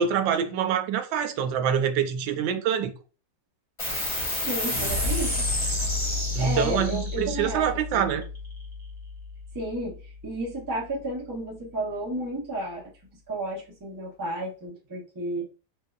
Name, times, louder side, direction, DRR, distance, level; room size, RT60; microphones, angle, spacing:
voice 1, 0.0-2.9 6.3-8.2, right 8 dB, 90° right, 1.3 m, -25 dB
sound 1, 3.8-10.7, left 2 dB, 20° left, 1.0 m, -30 dB
voice 2, 4.4-5.5 6.4-7.7 7.9-8.2 9.5-12.8 13.3-15.5, right 1 dB, 20° right, 0.5 m, -32 dB
3.9 x 2.5 x 2.3 m
omnidirectional pair, 2.0 m